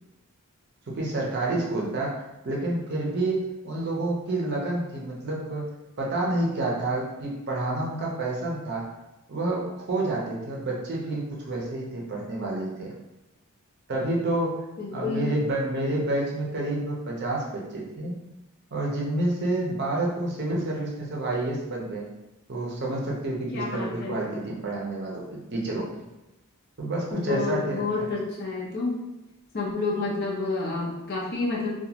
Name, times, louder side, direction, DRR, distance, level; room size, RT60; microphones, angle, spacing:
voice 1, 0.9-5.6 6.0-8.9 9.3-12.9 13.9-14.6 14.9-18.2 18.7-22.1 22.5-26.1 26.8-28.1, right 2 dB, 50° right, -2 dB, 0.6 m, -29 dB
voice 2, 14.8-15.3 23.5-24.2 27.1-29.0 29.5-31.7, left 3 dB, 45° left, -4 dB, 0.6 m, -29 dB
2.5 x 2.2 x 2.8 m, 0.98 s
head